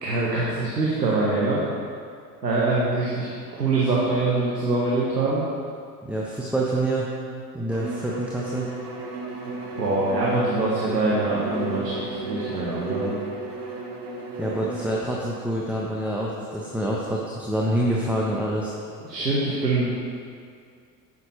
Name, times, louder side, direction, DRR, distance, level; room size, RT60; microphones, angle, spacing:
voice 1, 0.0-1.6 2.4-5.4 9.8-13.1 19.1-19.9, right 2 dB, 85° right, -6 dB, 1.4 m, -24 dB
voice 2, 6.0-7.1 7.5-8.7 14.4-18.7, right 1 dB, 5° right, -4 dB, 1.1 m, -26 dB
Bowed string instrument, 7.7-15.1, right 3 dB, 70° right, 1.6 m, -34 dB
10.5 x 7.0 x 4.4 m, 2.3 s
figure-of-eight pair, 75°, 48 cm